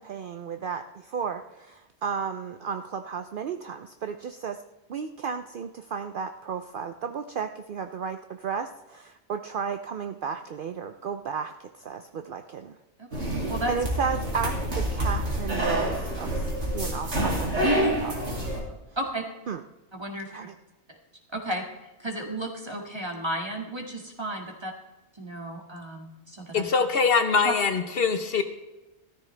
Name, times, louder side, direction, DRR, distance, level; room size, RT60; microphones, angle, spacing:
voice 1, 0.0-4.6 4.9-12.8 13.7-18.1 19.5-19.6 20.3-20.5, right 6 dB, 60° right, 7 dB, 0.7 m, -33 dB
voice 2, 13.0-13.7 17.6-17.9 19.0-19.2 19.9-20.3 21.3-21.6 22.0-24.7 25.2-26.7 27.4-27.5, right 1 dB, 25° right, 1 dB, 1.9 m, -32 dB
sound 1, 13.1-18.6, right 1 dB, 75° right, 2.8 m, -28 dB
voice 3, 26.5-28.4, left 5 dB, 55° left, 7 dB, 1.1 m, -23 dB
14.5 x 13.5 x 3.3 m, 1.0 s
omnidirectional pair, 1.2 m